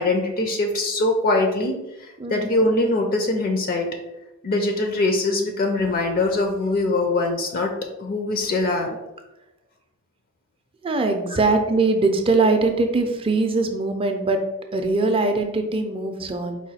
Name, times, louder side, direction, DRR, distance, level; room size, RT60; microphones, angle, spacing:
voice 1, 0.0-3.9 4.4-9.0 11.3-11.4, left 2 dB, 45° left, 4 dB, 0.5 m, -23 dB
voice 2, 2.2-2.5 10.8-14.4 14.7-16.6, right 3 dB, 25° right, 5 dB, 0.4 m, -21 dB
4.7 x 2.2 x 4.1 m, 0.96 s
head